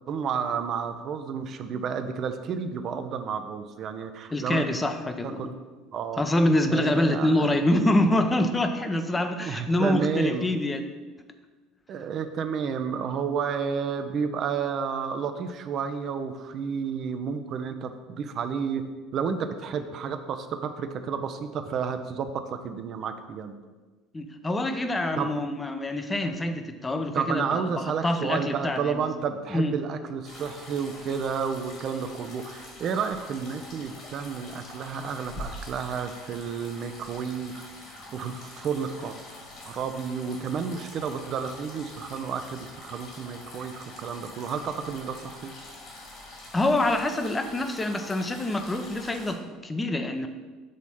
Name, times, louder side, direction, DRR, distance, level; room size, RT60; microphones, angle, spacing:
voice 1, 0.1-4.7 5.2-5.5 5.9-6.2 6.7-7.5 9.4-10.5 11.9-18.8 19.1-23.6 25.2-25.3 27.1-39.2 39.7-45.5, right 6 dB, 45° right, 8 dB, 0.5 m, -31 dB
voice 2, 4.3-5.5 6.2-10.9 24.1-29.1 29.5-29.7 46.5-50.3, left 1 dB, 15° left, 6 dB, 0.7 m, -26 dB
sound 1, 30.2-49.3, left 2 dB, 50° left, 2.1 m, -45 dB
6.5 x 4.0 x 5.5 m, 1.3 s
figure-of-eight pair, 65°, 0 cm